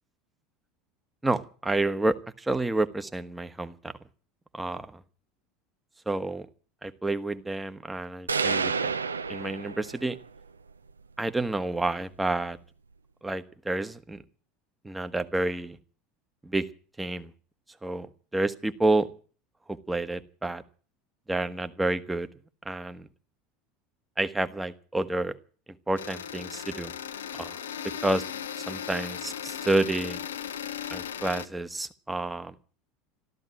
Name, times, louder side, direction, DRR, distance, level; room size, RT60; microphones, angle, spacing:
voice 1, 1.2-3.9 4.5-5.0 6.1-6.5 6.8-8.7 9.3-10.2 11.2-12.6 13.2-14.2 14.8-15.8 16.4-16.6 17.0-17.3 17.8-18.1 18.3-19.1 19.9-20.6 21.3-22.3 22.6-23.1 24.2-25.4 25.9-26.9 27.4-27.6 28.0-28.2 28.6-30.2 30.9-32.5, right 2 dB, 10° right, 11 dB, 1.2 m, -29 dB
Staircase Impulse-Response very long reverb drop shoe, 8.3-10.2, right 5 dB, 85° right, 0.7 m, -29 dB
sound 1, 26.0-31.5, left 9 dB, 75° left, 0.8 m, -37 dB
13.5 x 13.5 x 7.6 m, 0.41 s
figure-of-eight pair, 75°, 0 cm